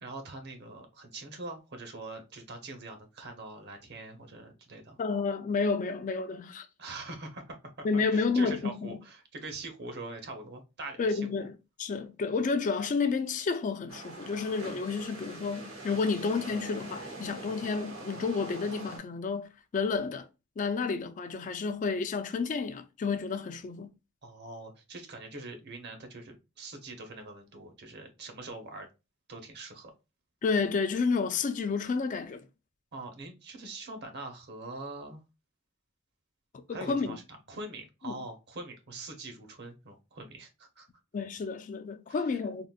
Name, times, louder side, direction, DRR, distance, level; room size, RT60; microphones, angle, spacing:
voice 1, 0.0-5.0 6.8-11.5 24.2-28.9 29.3-29.9 32.9-35.2 36.7-37.2 37.5-40.9 42.3-42.4, right 2 dB, 55° right, 0.8 m, -43 dB
voice 2, 5.0-6.7 7.8-9.0 11.0-20.3 20.6-23.9 30.4-32.5 36.7-37.2 38.0-38.2 41.1-42.7, left 4 dB, 40° left, 0.3 m, -30 dB
sound 1, 13.9-19.0, right 2 dB, 90° right, 1.3 m, -43 dB
3.7 x 2.2 x 2.3 m
head